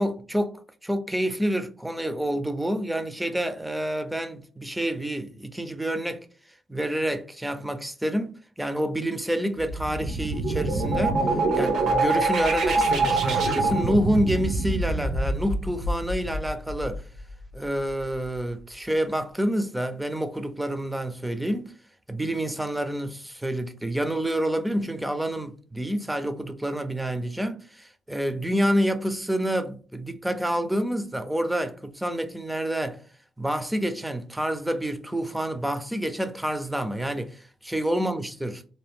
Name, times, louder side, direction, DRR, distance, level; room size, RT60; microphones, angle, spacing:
voice 1, 0.0-6.3 6.7-11.2 11.5-17.0 17.5-21.7 22.1-33.0 33.4-38.6, right 1 dB, 5° right, 0.4 m, -28 dB
sound 1, 9.6-17.2, right 2 dB, 75° right, 0.8 m, -25 dB
2.7 x 2.2 x 3.4 m
cardioid pair, 90°, 0 cm